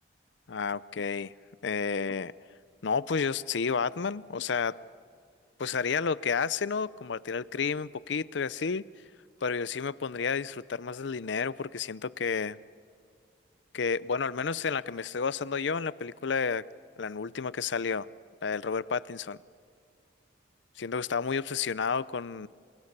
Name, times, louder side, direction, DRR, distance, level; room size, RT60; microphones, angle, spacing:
voice 1, 0.5-1.3 1.6-2.3 2.8-4.8 5.6-8.8 9.4-12.6 13.7-16.6 17.0-18.1 18.4-19.4 20.8-22.5, left 5 dB, 70° left, 18 dB, 0.6 m, -31 dB
28.5 x 27.5 x 6.7 m, 2.3 s
head